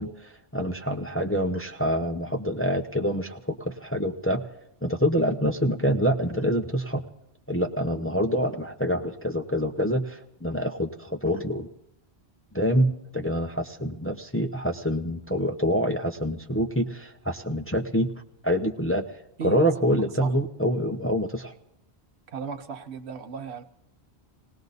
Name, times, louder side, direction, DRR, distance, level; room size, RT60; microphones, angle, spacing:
voice 1, 0.0-4.4 4.8-7.0 7.5-11.7 12.5-18.1 18.4-19.0 19.4-21.5, equal, 15° left, 3 dB, 0.7 m, -26 dB
voice 2, 22.3-23.6, right 6 dB, 75° right, 9 dB, 1.2 m, -35 dB
19.0 x 18.5 x 4.0 m, 0.81 s
omnidirectional pair, 1.1 m